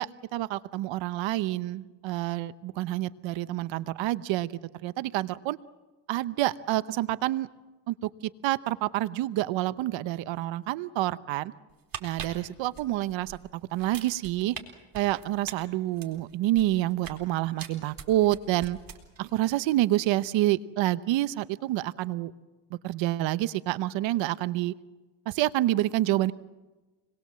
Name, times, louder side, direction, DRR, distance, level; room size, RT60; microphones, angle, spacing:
voice 1, 0.0-4.5 4.8-5.6 6.1-7.5 7.9-11.5 12.0-14.5 14.9-18.8 19.2-22.3 22.8-24.7 25.3-26.3, right 15 dB, 85° right, 15 dB, 0.9 m, -28 dB
sound 1, 11.7-13.4 13.7-14.6 14.9-17.2 17.6-19.3 19.6-19.8, right 8 dB, 50° right, 4.1 m, -42 dB
28.0 x 21.5 x 7.6 m, 1.2 s
cardioid pair, 105°, 44 cm